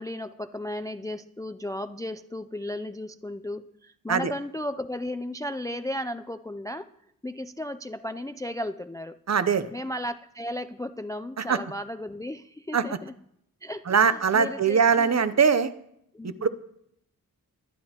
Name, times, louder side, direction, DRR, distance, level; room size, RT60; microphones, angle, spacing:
voice 1, 0.0-6.9 7.2-9.2 9.7-13.1 13.6-15.3 16.1-16.5, left 1 dB, 10° left, 11 dB, 0.3 m, -35 dB
voice 2, 9.3-9.7 11.4-11.6 12.7-12.8 13.9-15.7 16.2-16.5, right 6 dB, 50° right, 13 dB, 0.6 m, -22 dB
21.0 x 10.5 x 2.9 m, 0.75 s
wide cardioid pair, 110°, 35 cm